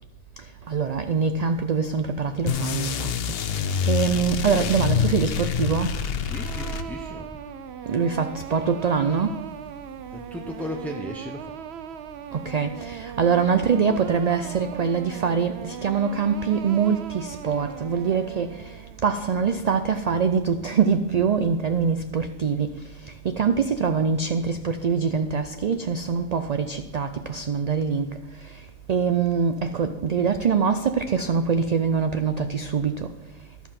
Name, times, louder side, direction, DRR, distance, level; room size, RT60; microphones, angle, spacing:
voice 1, 0.7-3.1 3.9-5.9 7.9-9.3 12.3-18.5 19.0-22.7 23.2-28.1 28.9-33.1, right 6 dB, 50° right, 0.5 m, -24 dB
sound 1, 2.5-7.3, left 7 dB, 60° left, 0.8 m, -26 dB
voice 2, 6.2-7.4 9.4-9.5 10.1-11.6, left 1 dB, ahead, 0.5 m, -36 dB
sound 2, 6.3-19.1, right 8 dB, 70° right, 0.8 m, -39 dB
11.5 x 7.1 x 5.8 m
omnidirectional pair, 1.2 m